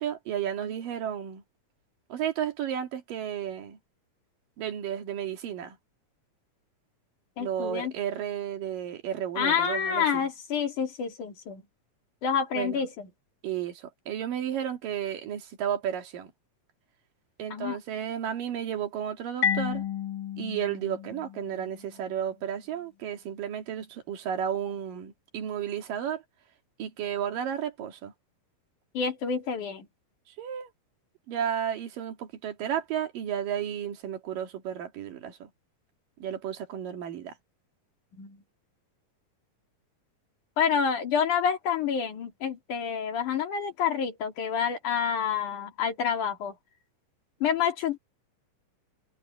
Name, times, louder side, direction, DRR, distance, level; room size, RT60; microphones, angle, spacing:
voice 1, 0.0-1.4 2.1-3.8 4.6-5.8 7.4-10.3 12.6-12.8 13.4-16.3 17.4-19.8 20.4-26.2 26.8-28.1 30.3-30.7 31.3-35.5 36.2-37.3, right 9 dB, 90° right, 3.9 m, -33 dB
voice 2, 7.4-7.9 9.4-11.6 12.2-13.1 17.5-17.8 28.9-29.9 38.2-38.4 40.6-46.5 47.4-48.0, left 7 dB, 70° left, 4.1 m, -28 dB
Marimba xylophone, 19.4-22.1, left 8 dB, 35° left, 2.0 m, -32 dB
omnidirectional pair, 3.8 m